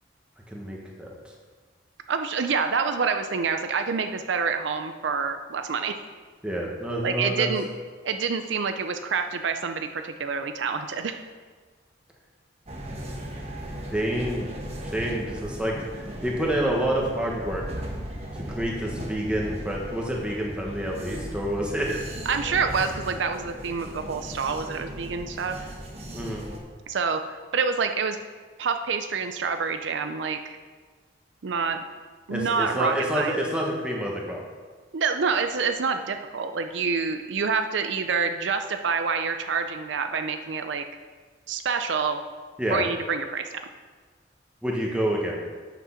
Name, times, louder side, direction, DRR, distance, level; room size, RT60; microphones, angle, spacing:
voice 1, 0.5-1.1 6.4-7.5 13.9-14.5 14.8-15.8 16.0-17.6 18.5-22.0 26.1-26.4 32.3-34.4 42.6-42.8 44.6-45.4, right 1 dB, 5° right, -2 dB, 1.3 m, -28 dB
voice 2, 2.1-5.9 7.0-7.7 8.0-11.2 22.3-25.6 26.9-28.2 28.6-30.6 31.4-31.8 32.3-33.4 34.9-40.8 41.5-42.2 42.7-43.6, right 5 dB, 70° right, 7 dB, 0.5 m, -27 dB
sound 1, 12.7-26.6, equal, 35° right, 1.2 m, -37 dB
8.3 x 6.1 x 5.7 m, 1.5 s
head